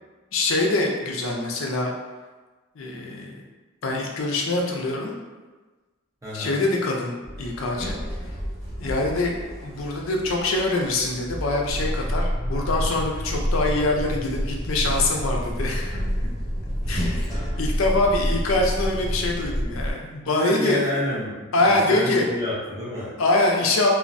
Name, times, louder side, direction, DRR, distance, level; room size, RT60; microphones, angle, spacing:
voice 1, 0.3-1.9 2.8-3.4 3.8-5.1 6.3-8.0 8.8-9.3 9.6-16.0 16.9-17.3 17.6-20.8 21.5-22.3 23.2-23.9, left 2 dB, 75° left, 0 dB, 0.4 m, -24 dB
voice 2, 6.2-6.6 17.0-17.2 20.2-23.1, left 1 dB, 15° right, -9 dB, 0.7 m, -29 dB
Sliding door, 7.2-12.1 13.7-18.6, equal, 15° left, 0.9 m, -35 dB
sound 1, 11.7-19.9, equal, 90° right, 1.0 m, -27 dB
2.5 x 2.1 x 2.5 m, 1.3 s
head